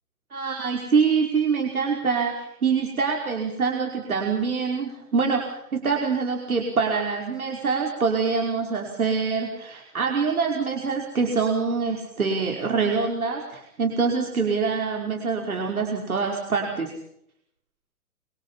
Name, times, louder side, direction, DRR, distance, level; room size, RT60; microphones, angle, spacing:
voice 1, 0.3-16.9, right 5 dB, 65° right, 1 dB, 5.4 m, -25 dB
26.5 x 25.5 x 5.8 m, 0.74 s
figure-of-eight pair, 120°, 45 cm